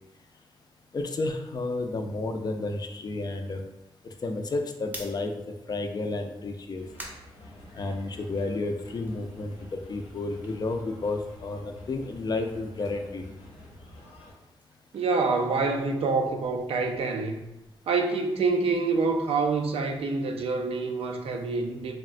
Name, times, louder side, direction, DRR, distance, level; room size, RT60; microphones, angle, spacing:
voice 1, 0.9-3.6 4.0-5.3 5.7-6.8 7.7-13.2, left 2 dB, 40° left, 5 dB, 0.3 m, -31 dB
sound 1, 4.9-8.3 8.6-11.6 11.9-16.0, right 1 dB, 15° right, 0.6 m, -50 dB
sound 2, 6.7-14.3, left 1 dB, 85° left, 0.6 m, -49 dB
voice 2, 14.9-17.4 17.9-21.9, right 4 dB, 80° right, 4 dB, 0.4 m, -26 dB
3.4 x 2.0 x 2.5 m, 0.95 s
cardioid pair, 75°, 10 cm